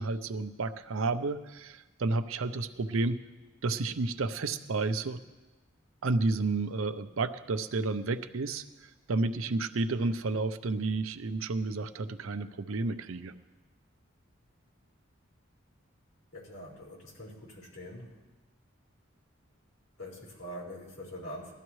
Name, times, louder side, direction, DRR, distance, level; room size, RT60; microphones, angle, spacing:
voice 1, 0.0-3.2 3.6-5.2 6.0-13.3, right 3 dB, 80° right, 11 dB, 0.6 m, -31 dB
voice 2, 16.3-18.2 20.0-21.5, equal, 90° left, -5 dB, 4.2 m, -44 dB
19.5 x 12.5 x 3.2 m, 1.2 s
head